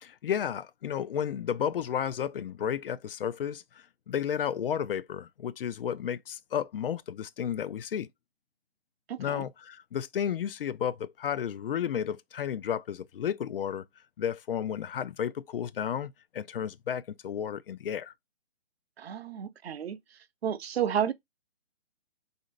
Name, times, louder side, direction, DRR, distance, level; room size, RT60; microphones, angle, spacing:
voice 1, 0.0-3.6 4.1-8.1 9.2-13.8 14.2-18.1, left 9 dB, 60° left, 0.4 m, -32 dB
voice 2, 9.1-9.4 19.0-20.0 20.4-21.1, right 9 dB, 70° right, 0.6 m, -31 dB
3.8 x 2.7 x 3.1 m
hypercardioid pair, 160°, 32 cm